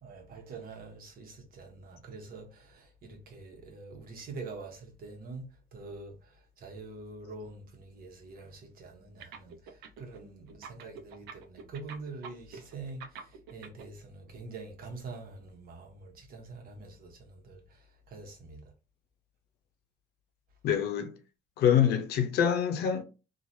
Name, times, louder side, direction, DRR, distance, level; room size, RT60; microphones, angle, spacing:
voice 1, 0.0-18.7, right 3 dB, 60° right, 1.1 m, -45 dB
sound 1, 9.2-10.2 10.5-13.8, right 6 dB, 85° right, 0.6 m, -45 dB
voice 2, 20.6-21.2 21.6-23.0, left 8 dB, 70° left, 0.6 m, -25 dB
3.0 x 2.4 x 2.7 m
cardioid pair, 110°, 17 cm